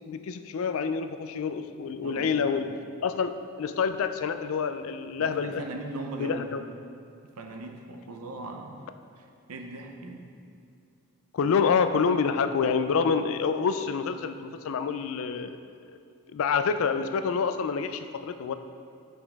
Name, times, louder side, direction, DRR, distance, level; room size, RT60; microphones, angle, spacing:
voice 1, 0.1-2.7 3.0-3.3 3.6-5.6 6.2-6.6 11.3-15.6 15.9-16.0 16.3-18.5, left 6 dB, 70° left, 9 dB, 0.3 m, -27 dB
voice 2, 2.0-2.8 5.2-6.7 7.4-8.9 9.2-10.2 11.4-11.5, right 2 dB, 85° right, 3 dB, 0.7 m, -39 dB
7.1 x 5.3 x 3.5 m, 2.5 s
head